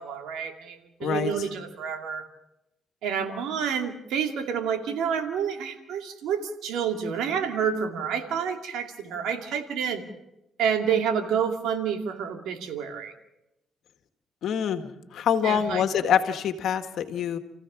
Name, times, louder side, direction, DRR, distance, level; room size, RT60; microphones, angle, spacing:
voice 1, 0.0-2.2 3.0-10.1 10.6-13.1 15.4-15.8, right 7 dB, 85° right, 5 dB, 2.3 m, -29 dB
voice 2, 1.0-1.3 14.4-17.4, left 8 dB, 70° left, 8 dB, 1.8 m, -25 dB
29.0 x 15.5 x 6.1 m, 0.89 s
cardioid pair, 90°, 0 cm